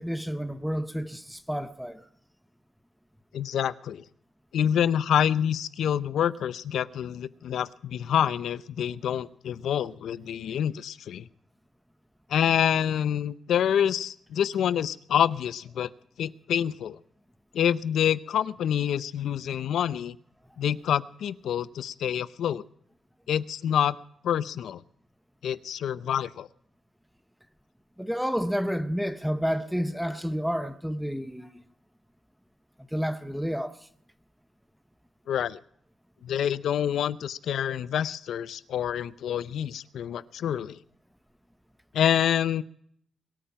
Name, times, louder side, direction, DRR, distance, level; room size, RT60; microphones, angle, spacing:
voice 1, 0.0-2.1 28.0-31.5 32.9-33.8, equal, ahead, 0.7 m, -30 dB
voice 2, 3.3-4.0 4.5-11.3 12.3-15.9 16.2-17.0 17.5-20.2 20.6-22.6 23.3-24.0 24.2-24.8 25.4-26.5 35.3-35.6 36.2-40.8 41.9-42.6, left 9 dB, 75° left, 0.6 m, -27 dB
22.5 x 8.8 x 5.8 m
wide cardioid pair, 165°, 0 cm